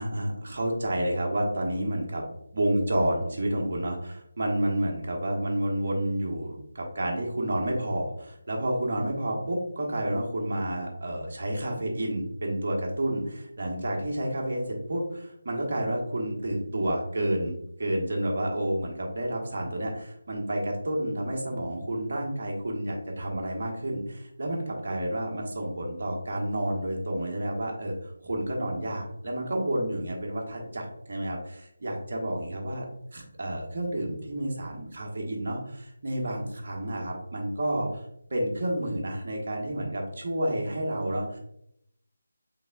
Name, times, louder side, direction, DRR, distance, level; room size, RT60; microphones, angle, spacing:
voice 1, 0.0-2.2 2.5-32.8 33.1-38.0 38.3-41.4, right 1 dB, 50° right, -1 dB, 1.1 m, -30 dB
5.3 x 3.4 x 2.3 m, 0.76 s
figure-of-eight pair, 160°, 0 cm